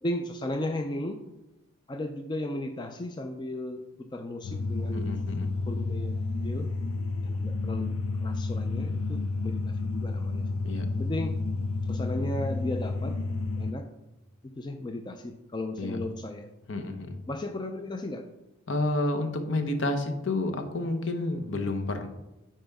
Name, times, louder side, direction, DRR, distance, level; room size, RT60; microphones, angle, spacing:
voice 1, 0.0-1.2 1.9-5.1 5.7-6.2 6.4-6.7 7.2-10.5 10.9-11.4 11.8-13.2 13.6-13.9 14.4-16.5 17.3-18.3, left 1 dB, 20° left, 6 dB, 0.3 m, -35 dB
sound 1, 4.4-13.7, left 3 dB, 80° left, 0.5 m, -31 dB
voice 2, 4.9-5.5 10.6-10.9 15.8-16.0 16.7-17.2 18.7-22.1, left 2 dB, 65° left, 6 dB, 0.8 m, -30 dB
9.1 x 4.3 x 3.5 m, 0.98 s
head